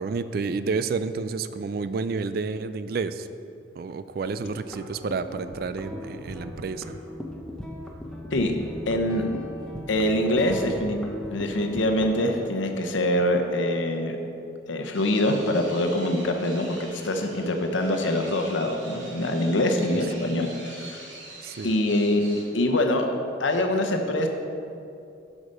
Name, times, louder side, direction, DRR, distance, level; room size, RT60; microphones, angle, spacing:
voice 1, 0.0-3.3 3.8-7.0 19.9-20.2 21.4-21.7, right 4 dB, 50° right, 12 dB, 0.3 m, -30 dB
sound 1, 4.2-12.5, left 1 dB, 5° left, 0.7 m, -38 dB
voice 2, 8.9-9.3 9.9-11.0 11.3-14.2 14.7-21.1 21.6-23.1 23.4-24.3, left 1 dB, 85° left, 4 dB, 0.9 m, -24 dB
sound 2, 14.9-22.4, right 2 dB, 85° right, 2.1 m, -44 dB
8.2 x 5.0 x 6.5 m, 2.6 s
head